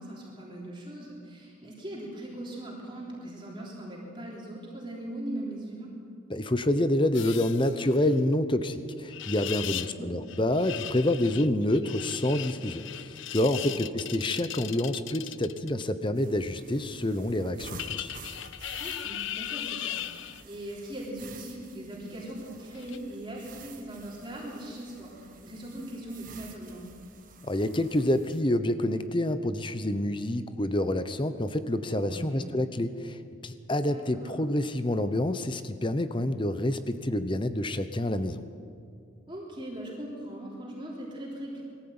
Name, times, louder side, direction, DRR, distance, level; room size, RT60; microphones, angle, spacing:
voice 1, 0.0-5.9 9.6-10.1 13.5-13.7 18.8-20.0 20.4-26.9 32.0-32.4 33.8-34.4 39.3-41.6, right 1 dB, 25° right, -4 dB, 3.3 m, -40 dB
voice 2, 6.3-18.1 27.5-38.4, left 1 dB, 25° left, 11 dB, 0.8 m, -28 dB
sound 1, 7.1-8.2 9.1-9.9 10.3-15.8 17.8-20.4 22.7-23.0, left 12 dB, 65° left, 0.5 m, -38 dB
sound 2, 16.2-28.4, right 4 dB, 40° right, 1.6 m, -50 dB
21.0 x 14.0 x 8.8 m, 2.4 s
head